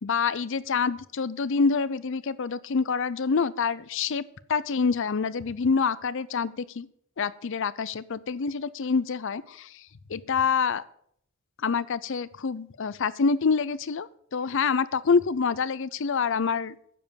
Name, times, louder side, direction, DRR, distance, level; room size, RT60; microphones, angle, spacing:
voice 1, 0.0-4.2 4.5-6.9 7.2-9.7 10.1-10.8 11.6-16.8, left 5 dB, 60° left, 18 dB, 0.5 m, -26 dB
10.0 x 7.5 x 6.9 m, 0.68 s
head